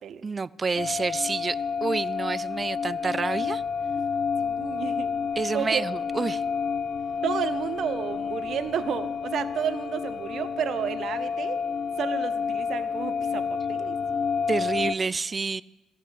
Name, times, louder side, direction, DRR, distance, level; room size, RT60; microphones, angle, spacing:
voice 1, 0.2-3.6 5.4-6.4 14.5-15.6, right 4 dB, 30° right, 19 dB, 0.3 m, -28 dB
sound 1, 0.8-15.0, left 6 dB, 50° left, 0.4 m, -29 dB
voice 2, 4.4-5.1 5.5-5.9 7.2-11.6 12.0-14.3, right 8 dB, 65° right, 12 dB, 0.7 m, -32 dB
14.5 x 5.7 x 8.3 m, 1.0 s
cardioid pair, 90°, 0 cm